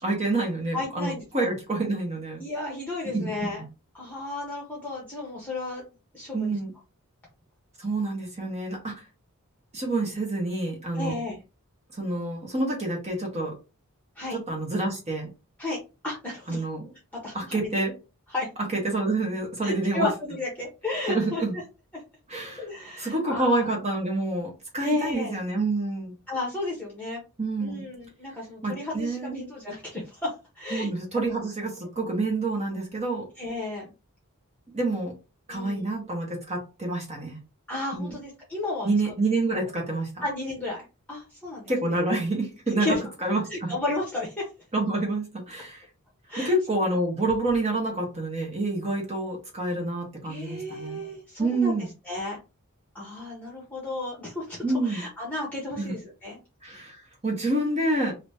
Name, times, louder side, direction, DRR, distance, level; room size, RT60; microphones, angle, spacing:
voice 1, 0.0-2.4 3.1-3.5 6.3-6.7 7.8-9.0 9.7-11.1 11.9-13.5 14.3-15.3 16.5-16.9 17.3-17.9 18.8-20.1 21.1-21.5 22.3-22.6 23.0-26.1 27.4-27.9 28.6-29.4 30.7-33.2 34.7-35.1 35.5-37.4 37.9-38.1 38.8-40.2 41.7-43.7 44.7-45.8 46.4-51.0 51.4-51.9 54.6-55.0 55.8-55.9 56.6-56.9 57.2-58.1, right 2 dB, 30° right, 0 dB, 1.1 m, -28 dB
voice 2, 0.7-1.5 2.4-3.6 3.9-5.9 6.1-6.6 10.9-11.4 14.2-14.4 15.6-16.6 17.2-17.7 18.3-18.5 19.6-21.4 22.6-23.7 24.8-25.4 26.3-27.2 27.6-30.3 30.5-30.9 33.4-33.9 35.5-35.8 37.7-38.9 40.2-42.0 42.8-43.0 43.5-44.5 46.3-46.5 50.2-51.7 52.1-52.4 52.9-56.4, left 2 dB, 5° left, -4 dB, 1.0 m, -33 dB
2.9 x 2.7 x 3.4 m, 0.29 s
head